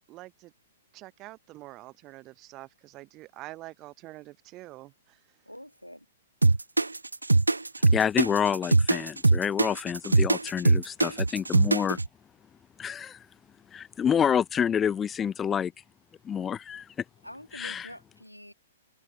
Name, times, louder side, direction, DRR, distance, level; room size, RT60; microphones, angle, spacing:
voice 1, 0.1-0.5 0.9-5.2, right 18 dB, 30° right, 1.1 m, -46 dB
voice 2, 5.5-6.1 17.2-18.5, equal, 90° left, 1.8 m, -46 dB
sound 1, 6.4-12.1, right 2 dB, 80° right, 0.3 m, -21 dB
voice 3, 7.9-12.0 12.8-13.2 13.7-15.7 16.2-16.9 17.5-17.9, left 8 dB, 15° left, 0.5 m, -28 dB
figure-of-eight pair, 115°, 0 cm